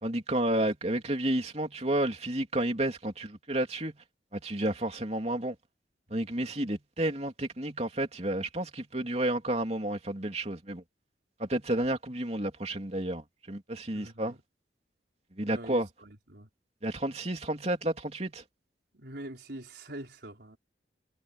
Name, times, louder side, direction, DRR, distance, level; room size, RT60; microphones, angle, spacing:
voice 1, 0.0-3.9 4.3-5.5 6.1-10.8 11.4-14.4 15.4-15.9 16.8-18.4, right 1 dB, 35° right, 3.2 m, -31 dB
voice 2, 13.9-14.4 15.5-16.5 18.9-20.6, right 1 dB, 65° right, 4.4 m, -44 dB
head